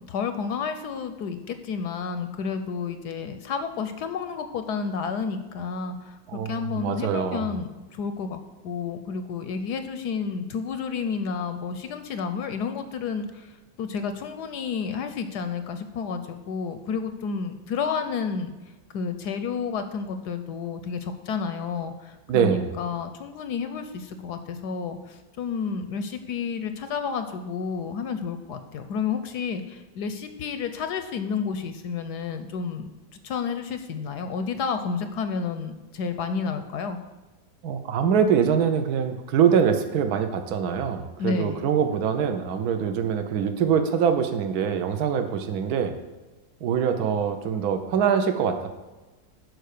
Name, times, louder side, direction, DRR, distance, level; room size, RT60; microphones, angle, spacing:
voice 1, 0.0-6.2 6.4-18.5 18.9-32.9 33.2-37.0 41.2-41.7, left 5 dB, 70° left, 9 dB, 1.1 m, -31 dB
voice 2, 6.3-7.5 22.3-22.7 37.6-45.9 46.6-48.7, right 7 dB, 60° right, 7 dB, 1.3 m, -24 dB
11.0 x 4.8 x 6.6 m, 1.2 s
omnidirectional pair, 2.1 m